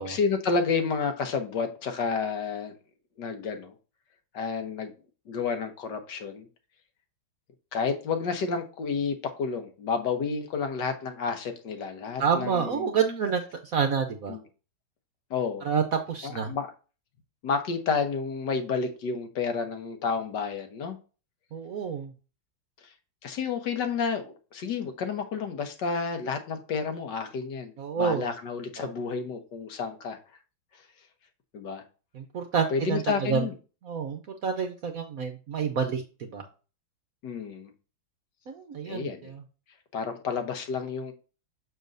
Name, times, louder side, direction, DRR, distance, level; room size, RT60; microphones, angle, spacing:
voice 1, 0.1-2.8 3.2-3.7 4.3-4.9 5.3-6.5 7.7-12.9 14.3-14.4 15.3-15.6 16.2-16.7 17.4-21.0 23.2-30.2 31.5-31.8 32.7-33.5 37.2-37.7 38.9-39.3 39.9-41.1, left 5 dB, 65° left, 6 dB, 1.5 m, -30 dB
voice 2, 12.2-14.4 15.6-16.5 21.5-22.1 27.8-28.3 28.8-28.9 32.1-33.5 33.8-36.4 38.5-39.4, right 6 dB, 60° right, 5 dB, 0.9 m, -28 dB
6.9 x 6.5 x 2.6 m, 0.34 s
omnidirectional pair, 2.2 m